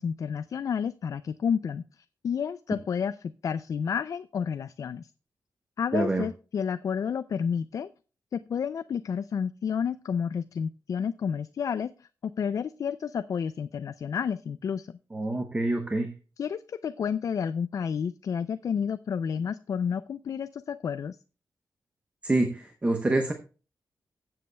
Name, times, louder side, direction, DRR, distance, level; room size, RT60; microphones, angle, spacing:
voice 1, 0.0-5.1 5.8-7.9 8.3-14.9 16.4-21.2, left 7 dB, 55° left, 12 dB, 0.3 m, -30 dB
voice 2, 5.9-6.3 15.1-16.1 22.2-23.3, right 2 dB, 20° right, 5 dB, 0.8 m, -26 dB
16.0 x 7.6 x 2.2 m, 0.35 s
wide cardioid pair, 165°, 7 cm